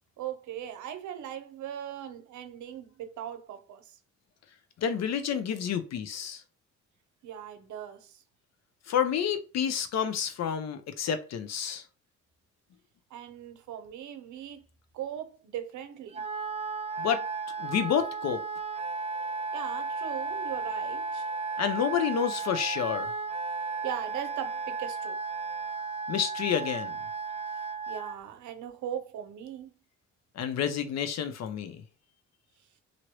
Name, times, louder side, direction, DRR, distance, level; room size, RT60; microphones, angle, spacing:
voice 1, 0.2-3.9 7.2-8.2 13.1-14.6 14.9-16.2 19.5-21.3 23.8-25.2 27.9-29.7, right 10 dB, 75° right, 0.7 m, -39 dB
voice 2, 4.8-6.4 8.9-11.8 17.0-17.2 17.6-18.4 21.6-23.1 26.1-26.9 30.4-31.8, left 8 dB, 60° left, 0.7 m, -29 dB
Wind instrument woodwind instrument, 16.1-28.2, right 4 dB, 20° right, 0.3 m, -34 dB
3.0 x 2.6 x 3.0 m
cardioid pair, 90°, 30 cm